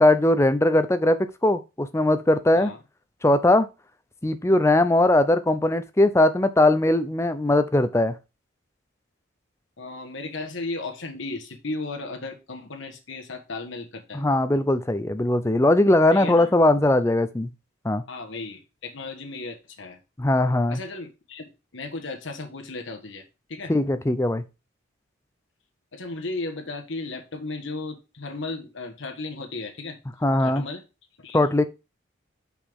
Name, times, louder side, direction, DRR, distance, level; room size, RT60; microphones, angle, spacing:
voice 1, 0.0-2.7 3.2-3.7 4.2-8.2 14.1-17.5 17.8-18.0 20.2-20.8 23.7-24.4 30.2-30.6 31.3-31.6, left 1 dB, 15° left, 0.5 m, -20 dB
voice 2, 9.8-14.2 16.1-16.5 18.1-20.0 20.7-21.4 21.7-23.7 25.9-30.0 30.4-30.8 31.2-31.4, left 3 dB, 65° left, 1.4 m, -35 dB
6.2 x 5.8 x 3.6 m
head